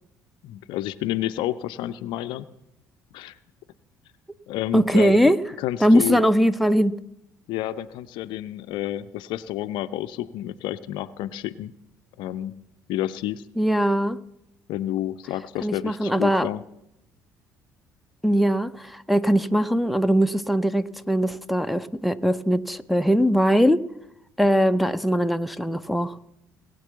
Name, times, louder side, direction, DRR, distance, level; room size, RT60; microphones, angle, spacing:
voice 1, 0.4-2.5 3.1-3.4 4.5-6.3 7.5-11.7 12.2-12.5 12.9-13.4 14.7-16.6, left 13 dB, 60° left, 13 dB, 0.6 m, -30 dB
voice 2, 4.7-5.4 5.8-7.0 13.6-14.2 15.6-16.5 18.2-23.8 24.4-26.2, equal, ahead, 8 dB, 0.7 m, -21 dB
20.0 x 8.3 x 6.9 m, 0.82 s
figure-of-eight pair, 55°, 9 cm